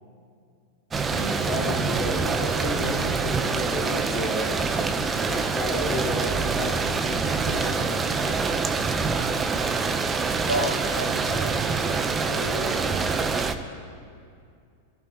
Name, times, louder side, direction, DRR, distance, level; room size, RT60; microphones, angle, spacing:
sound 1, 0.9-13.5, right 4 dB, 20° right, 1.0 m, -25 dB
voice 1, 1.0-4.5 5.3-8.6, left 1 dB, 35° left, -6 dB, 3.7 m, -32 dB
voice 2, 10.4-11.9 12.3-13.0, equal, 80° left, -1 dB, 2.8 m, -32 dB
26.5 x 14.5 x 3.2 m, 2.3 s
figure-of-eight pair, 90°, 0 cm